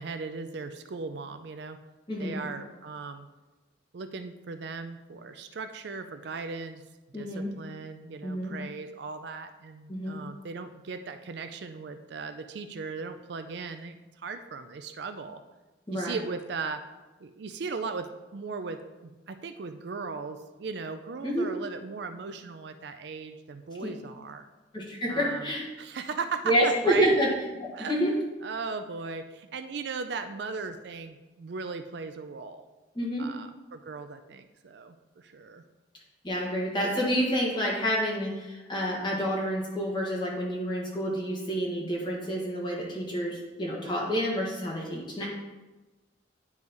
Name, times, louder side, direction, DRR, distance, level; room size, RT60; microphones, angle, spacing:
voice 1, 0.0-1.8 2.2-3.3 3.9-6.8 7.1-15.4 15.9-16.8 17.2-24.5 25.1-25.5 25.8-27.1 27.7-28.0 28.4-32.6 33.2-35.6, right 4 dB, 55° right, 9 dB, 0.4 m, -37 dB
voice 2, 2.1-2.4 7.1-7.5 8.2-8.5 9.9-10.2 15.9-16.2 21.2-21.5 23.8-23.9 24.7-25.7 26.4-27.3 27.6-28.1 32.9-33.3 36.2-45.3, equal, 25° left, -4 dB, 1.6 m, -28 dB
9.5 x 3.2 x 5.3 m, 1.1 s
head